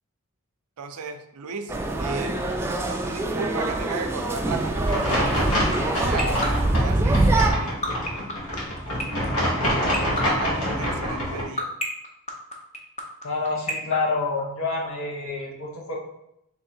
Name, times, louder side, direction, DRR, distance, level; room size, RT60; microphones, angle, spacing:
voice 1, 0.8-2.4 3.0-7.8 9.8-11.7, right 4 dB, 85° right, 7 dB, 0.5 m, -35 dB
sound 1, 1.7-7.5, right 2 dB, 10° right, 0.3 m, -24 dB
sound 2, 4.9-11.4, equal, 85° left, 1.5 m, -26 dB
sound 3, 5.3-14.9, left 1 dB, 30° left, 0.6 m, -28 dB
voice 2, 13.2-16.0, left 3 dB, 70° left, -2 dB, 1.2 m, -28 dB
3.6 x 3.0 x 4.2 m, 0.80 s
head